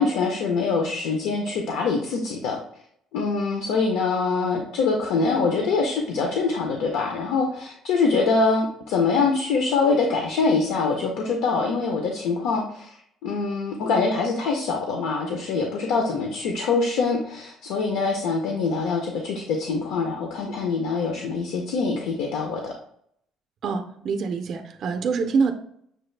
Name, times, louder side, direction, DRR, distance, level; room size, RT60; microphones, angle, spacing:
voice 1, 0.0-2.6 3.1-13.0 13.2-22.7, left 4 dB, 80° left, 2 dB, 0.6 m, -24 dB
voice 2, 23.6-25.5, right 5 dB, 40° right, 6 dB, 0.4 m, -25 dB
6.5 x 2.4 x 3.2 m, 0.69 s
cardioid pair, 160°, 0 cm